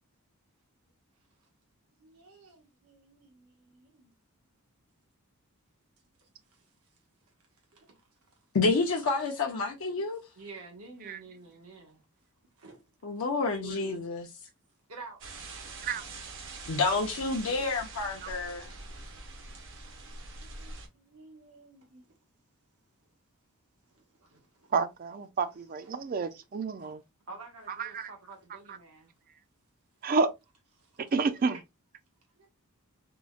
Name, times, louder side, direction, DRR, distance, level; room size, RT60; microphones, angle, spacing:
voice 1, 1.9-4.1 6.2-6.7 7.7-8.0 8.3-8.4 10.4-12.0 12.6-12.8 13.4-14.0 14.9-15.2 17.4-17.8 20.4-22.2 23.9-24.7 25.8-25.9 26.3-26.4 26.8-27.0 27.3-29.1 30.8-31.0 32.4-32.5, right 3 dB, 80° right, 1.0 m, -51 dB
voice 2, 8.5-10.2 13.0-14.3 16.7-18.7, left 3 dB, 65° left, 0.5 m, -29 dB
sound 1, 15.2-20.9, right 3 dB, 60° right, 0.7 m, -44 dB
voice 3, 24.7-27.0 27.8-28.1 28.7-28.8 30.0-30.3 31.1-31.6, right 4 dB, 40° right, 0.3 m, -29 dB
3.7 x 2.1 x 2.3 m
head